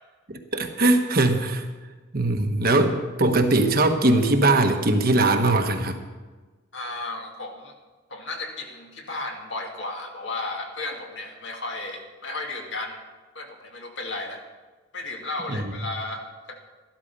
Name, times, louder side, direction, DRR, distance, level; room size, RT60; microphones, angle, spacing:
voice 1, 0.3-1.7 2.1-6.0 15.5-15.6, right 2 dB, 45° right, 5 dB, 1.2 m, -21 dB
voice 2, 6.7-7.7 8.1-13.0 13.3-14.5 14.9-16.6, left 2 dB, 60° left, 2 dB, 2.1 m, -34 dB
13.5 x 12.0 x 5.4 m, 1.3 s
head